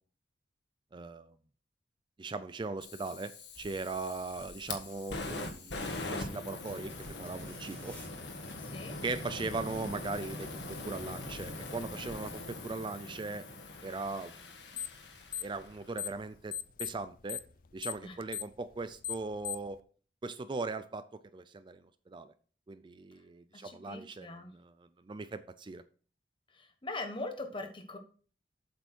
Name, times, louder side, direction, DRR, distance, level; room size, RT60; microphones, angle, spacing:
voice 1, 0.9-1.3 2.2-3.3 3.6-7.9 9.0-13.5 13.8-14.4 15.4-16.5 16.8-17.4 17.7-19.8 20.2-21.1 21.3-22.3 22.7-25.8, right 3 dB, 25° right, 13 dB, 0.4 m, -39 dB
Fire, 2.8-15.9, left 2 dB, 80° left, 1.6 m, -42 dB
sound 1, 3.5-5.8 6.6-8.6 9.2-12.5, equal, 10° left, 3.1 m, -56 dB
sound 2, 14.7-15.0 15.3-16.2 16.5-19.8, left 10 dB, 50° left, 0.6 m, -38 dB
voice 2, 23.5-24.5 26.5-28.0, left 2 dB, 30° left, 5 dB, 1.3 m, -41 dB
7.9 x 6.8 x 4.4 m, 0.42 s
head